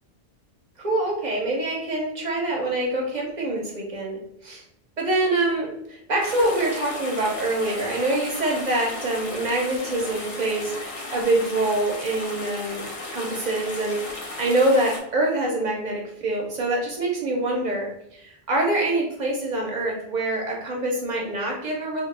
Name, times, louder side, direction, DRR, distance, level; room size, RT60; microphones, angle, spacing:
voice 1, 0.8-4.6 5.0-22.1, right 2 dB, 55° right, -1 dB, 0.6 m, -25 dB
sound 1, 6.2-15.0, left 2 dB, 60° left, 0.3 m, -35 dB
2.1 x 2.1 x 3.1 m, 0.77 s
omnidirectional pair, 1.1 m